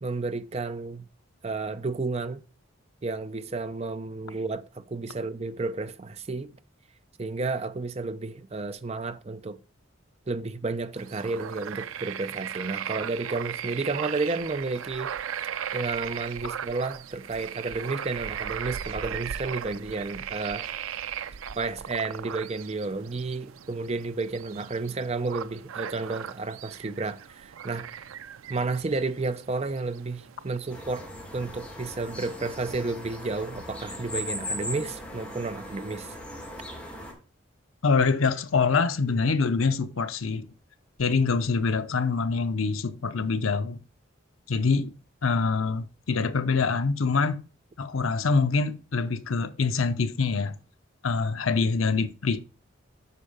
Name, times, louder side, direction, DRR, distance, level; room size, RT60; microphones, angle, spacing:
voice 1, 0.0-1.1 1.4-2.4 3.0-6.5 7.2-9.6 10.3-15.1 15.7-20.7 21.6-28.0 28.5-36.2, right 3 dB, 30° right, 0.5 m, -32 dB
sound 1, 11.0-30.8, right 9 dB, 90° right, 0.4 m, -37 dB
sound 2, 30.7-37.1, left 1 dB, 5° left, 3.2 m, -38 dB
voice 2, 37.8-40.5 41.0-43.8 44.5-44.9 45.2-47.4 47.8-50.5 51.0-52.4, left 4 dB, 90° left, 0.7 m, -25 dB
8.2 x 5.5 x 5.4 m
head